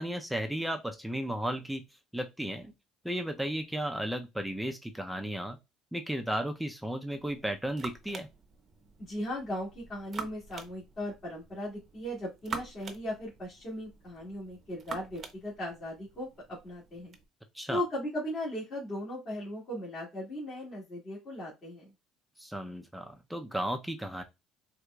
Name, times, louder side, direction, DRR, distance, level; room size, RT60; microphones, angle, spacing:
voice 1, 0.0-1.8 2.1-2.7 3.0-5.6 5.9-8.3 17.5-17.8 22.4-24.2, right 1 dB, 5° right, 6 dB, 0.5 m, -34 dB
sound 1, 7.1-17.2, right 4 dB, 40° right, 0.7 m, -46 dB
voice 2, 9.0-17.1 17.7-21.9, left 1 dB, 40° left, -6 dB, 1.9 m, -37 dB
4.4 x 2.4 x 2.2 m, 0.23 s
supercardioid pair, 100°, 0 cm